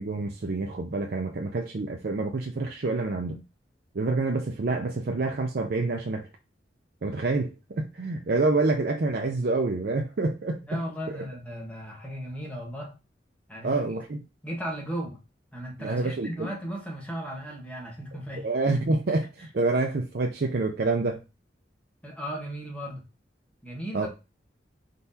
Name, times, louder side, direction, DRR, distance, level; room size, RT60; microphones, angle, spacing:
voice 1, 0.0-3.4 3.9-6.3 7.0-10.6 11.1-11.2 13.6-14.2 15.8-16.5 18.4-21.2 23.9-24.1, right 3 dB, 55° right, 0.5 m, -27 dB
voice 2, 10.6-13.0 13.5-13.8 14.4-15.2 15.5-18.5 22.0-23.0 23.6-24.1, equal, 10° left, 1.3 m, -36 dB
4.4 x 3.8 x 2.7 m
head